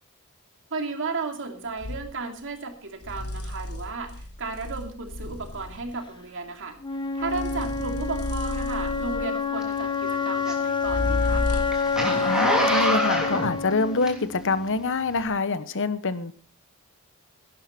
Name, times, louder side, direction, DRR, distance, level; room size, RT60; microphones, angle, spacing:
voice 1, 0.7-6.8 7.1-11.5, right 3 dB, 60° right, 5 dB, 2.6 m, -34 dB
sound 1, 1.8-2.1 3.0-6.0 7.2-9.5 10.8-11.9, left 2 dB, 80° left, 2.1 m, -32 dB
Wind instrument woodwind instrument, 6.8-14.8, left 5 dB, 20° left, 1.2 m, -28 dB
Zipper (clothing), 9.6-14.6 15.1-15.2, equal, 5° right, 3.1 m, -27 dB
voice 2, 12.3-16.3, left 3 dB, 60° left, 13 dB, 1.1 m, -26 dB
17.0 x 11.5 x 4.3 m, 0.41 s
head